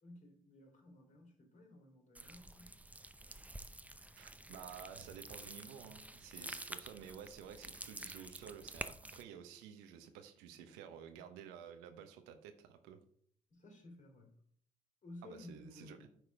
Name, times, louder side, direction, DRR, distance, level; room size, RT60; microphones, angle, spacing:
voice 1, 0.0-2.8 13.5-14.3 15.0-16.1, left 1 dB, 45° left, 1 dB, 3.5 m, -55 dB
sound 1, 2.2-9.2, right 1 dB, 10° right, 0.7 m, -49 dB
voice 2, 4.2-13.0 15.2-16.1, right 8 dB, 75° right, 7 dB, 1.0 m, -52 dB
9.1 x 4.8 x 4.8 m, 0.63 s
hypercardioid pair, 45°, 18 cm